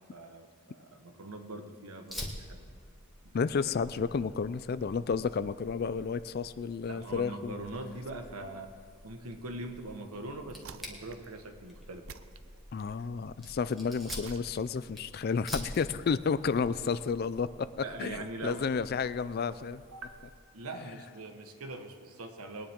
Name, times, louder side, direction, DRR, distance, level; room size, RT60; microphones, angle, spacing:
voice 1, 0.1-2.6 3.2-3.5 4.0-4.1 6.9-8.7 9.0-12.0 17.8-18.7 19.9-22.7, right 2 dB, 90° right, 5 dB, 1.3 m, -42 dB
Fire, 2.1-20.4, equal, ahead, 1.6 m, -48 dB
voice 2, 3.3-7.5 12.7-19.8, left 5 dB, 45° left, 15 dB, 0.3 m, -31 dB
sound 1, 10.6-11.4 12.1-13.0 14.1-15.0, right 7 dB, 70° right, 0.5 m, -50 dB
21.5 x 10.0 x 3.6 m, 2.2 s
head